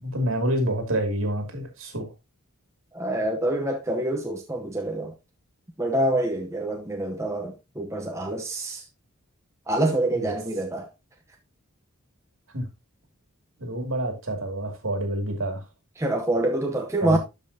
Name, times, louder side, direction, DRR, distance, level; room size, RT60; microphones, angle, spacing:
voice 1, 0.0-2.1 10.1-10.4 12.5-12.7 13.6-15.7 17.0-17.2, right 1 dB, 65° right, 2.5 m, -28 dB
voice 2, 2.9-5.1 5.8-8.8 9.7-10.9 16.0-17.2, right 1 dB, 15° right, 0.8 m, -26 dB
12.5 x 5.4 x 2.7 m
head